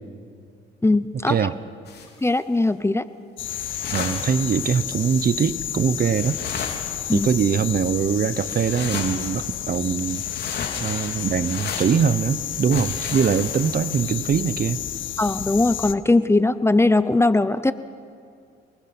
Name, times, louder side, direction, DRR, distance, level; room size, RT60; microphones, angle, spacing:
voice 1, 0.8-1.3 2.2-3.0 7.1-7.3 15.2-17.7, left 2 dB, 15° left, 14 dB, 0.8 m, -19 dB
sound 1, 1.9-2.6 3.5-5.0 5.7-5.8 6.0-7.6 8.3-9.7 9.9-14.0, left 5 dB, 55° left, 3.5 m, -35 dB
sound 2, 3.4-15.9, left 12 dB, 75° left, 0.8 m, -31 dB
voice 2, 3.9-6.4 7.1-10.2 10.8-14.8, right 7 dB, 50° right, 15 dB, 1.0 m, -22 dB
29.0 x 20.5 x 6.2 m, 2.4 s
cardioid pair, 90°, 20 cm